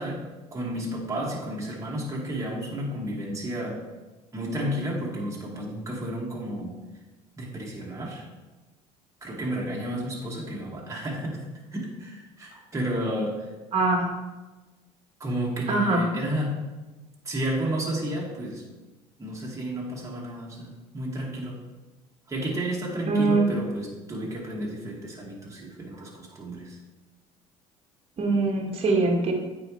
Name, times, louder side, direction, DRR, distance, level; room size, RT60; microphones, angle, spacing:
voice 1, 0.0-3.9 4.3-6.8 7.4-8.3 9.2-13.5 15.2-16.6 17.2-18.6 19.2-21.6 22.3-26.8, right 1 dB, 20° right, -3 dB, 2.2 m, -32 dB
voice 2, 13.7-14.1 15.7-16.0 23.1-23.5 28.2-29.3, right 3 dB, 40° right, 1 dB, 1.8 m, -22 dB
8.9 x 4.7 x 3.3 m, 1.2 s
supercardioid pair, 85°, 14 cm